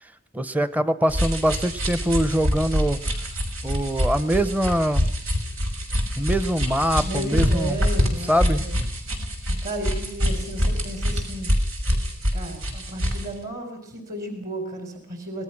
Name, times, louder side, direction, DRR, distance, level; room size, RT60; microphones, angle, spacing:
voice 1, 0.0-3.0 3.6-5.1 6.2-7.8 8.3-8.6, equal, 10° right, 13 dB, 0.9 m, -23 dB
sound 1, 1.1-13.3, equal, 80° right, 6.1 m, -25 dB
voice 2, 7.0-8.7 9.6-11.5 12.3-15.4, right 1 dB, 45° right, 5 dB, 4.7 m, -33 dB
26.5 x 19.5 x 6.0 m, 0.67 s
head